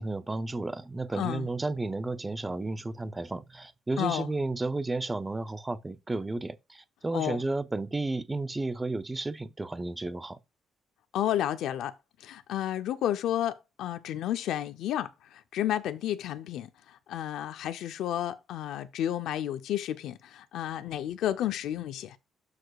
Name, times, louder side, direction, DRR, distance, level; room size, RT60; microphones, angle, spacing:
voice 1, 0.0-10.4, right 2 dB, 15° right, 0.5 m, -32 dB
voice 2, 1.1-1.5 4.0-4.3 7.1-7.4 11.1-11.9 12.2-22.2, left 11 dB, 80° left, 0.5 m, -31 dB
12.5 x 4.8 x 2.4 m
cardioid pair, 150°, 0 cm